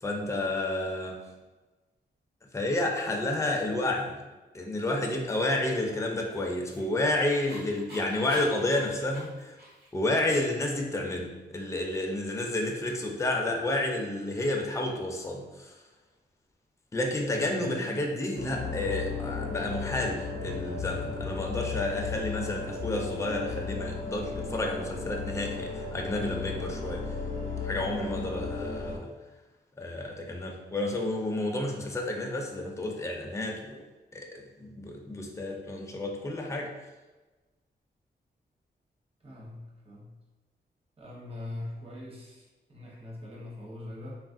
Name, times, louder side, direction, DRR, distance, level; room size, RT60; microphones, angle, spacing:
voice 1, 0.0-1.2 2.5-4.2 4.5-9.6 9.9-15.7 16.9-27.0 27.6-29.1 29.8-33.8 34.1-36.7, left 1 dB, 15° left, 1 dB, 0.4 m, -30 dB
Dog, 6.3-10.1, equal, 65° right, 1.3 m, -47 dB
voice 2, 17.4-18.1 18.4-18.9 39.2-40.2 41.0-44.2, left 1 dB, 35° right, -4 dB, 0.9 m, -42 dB
sound 1, 18.4-29.0, left 4 dB, 75° left, 0.6 m, -35 dB
3.1 x 2.4 x 2.5 m, 1.2 s
wide cardioid pair, 95°, 18 cm